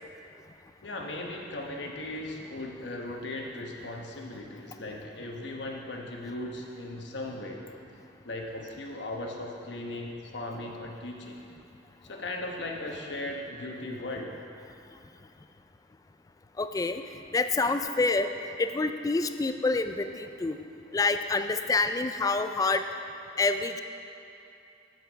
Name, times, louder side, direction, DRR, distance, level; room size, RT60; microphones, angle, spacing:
voice 1, 0.8-7.6 8.2-11.4 12.0-14.3 18.0-18.1 20.1-20.2, left 1 dB, 70° left, 1 dB, 1.0 m, -38 dB
voice 2, 16.6-17.0 17.3-18.3 18.6-20.6 20.9-22.8 23.4-23.8, left 3 dB, 20° left, 9 dB, 0.3 m, -27 dB
7.9 x 7.5 x 5.1 m, 2.7 s
head